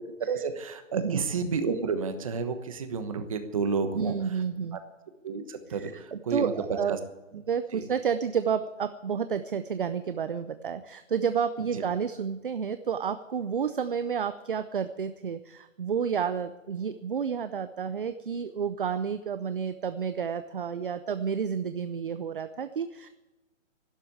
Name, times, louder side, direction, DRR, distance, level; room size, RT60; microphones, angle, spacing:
voice 1, 0.2-4.1 4.7-4.8 5.2-6.5 6.9-7.0 7.3-7.4 7.7-7.8, right 5 dB, 25° right, 8 dB, 1.2 m, -31 dB
voice 2, 4.0-4.8 5.7-7.0 7.5-23.1, right 7 dB, 45° right, 11 dB, 0.6 m, -30 dB
12.0 x 11.5 x 8.8 m, 1.1 s
hypercardioid pair, 180°, 39 cm